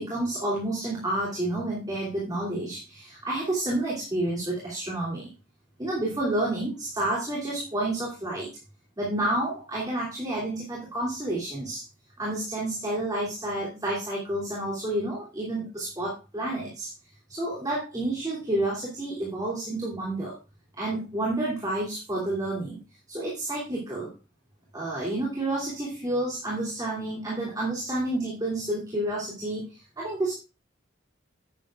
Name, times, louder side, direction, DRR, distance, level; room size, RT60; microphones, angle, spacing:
voice 1, 0.0-5.3 5.8-8.5 9.0-11.8 12.2-16.9 17.3-20.4 20.8-22.8 23.1-24.1 24.7-30.4, right 1 dB, 20° right, -5 dB, 2.9 m, -30 dB
11.0 x 9.8 x 2.5 m, 0.30 s
head